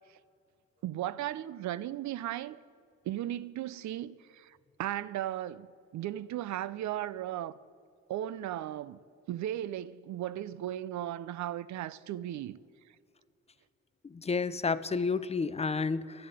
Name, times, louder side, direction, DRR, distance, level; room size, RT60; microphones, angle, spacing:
voice 1, 0.8-2.6 3.1-5.7 5.9-7.5 8.1-9.0 9.3-12.6, right 12 dB, 70° right, 0.5 m, -36 dB
voice 2, 14.0-16.3, left 4 dB, 20° left, 0.5 m, -31 dB
12.5 x 7.5 x 9.7 m
cardioid pair, 90°, 30 cm